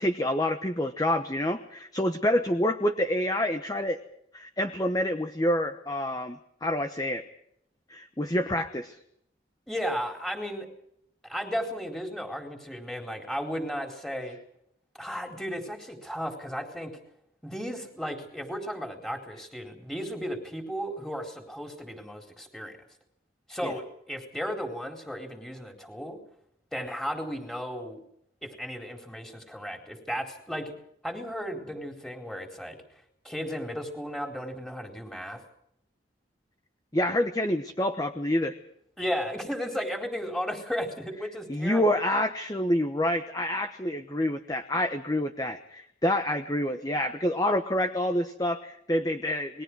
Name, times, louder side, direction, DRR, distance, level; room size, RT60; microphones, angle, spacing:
voice 1, 0.0-4.0 4.3-7.2 7.9-9.0 23.6-23.7 36.9-38.5 41.5-49.6, left 1 dB, 20° left, 7 dB, 1.1 m, -27 dB
voice 2, 9.7-10.7 11.2-14.4 15.0-17.0 17.4-22.8 23.5-26.2 26.7-28.0 28.4-30.7 31.0-32.8 33.2-35.4 39.0-42.0, equal, 5° left, 3 dB, 4.3 m, -34 dB
28.5 x 22.0 x 4.9 m, 0.73 s
head